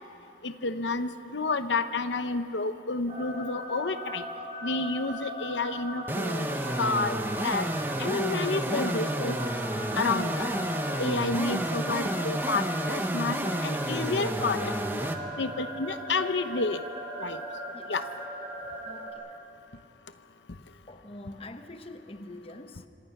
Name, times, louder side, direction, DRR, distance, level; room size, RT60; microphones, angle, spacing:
voice 1, 0.4-4.2 4.6-7.2 7.4-7.7 8.0-9.4 9.9-10.5 11.0-15.0 15.4-16.8 17.2-17.4 17.9-18.0, left 3 dB, 80° left, 10 dB, 0.9 m, -30 dB
sound 1, 3.1-19.1, equal, 35° right, 4.8 m, -38 dB
sound 2, 6.1-15.2, right 1 dB, 10° right, 1.1 m, -30 dB
voice 2, 18.8-19.3 20.9-22.9, left 1 dB, 30° left, 8 dB, 1.0 m, -44 dB
26.5 x 26.0 x 6.0 m, 2.6 s
head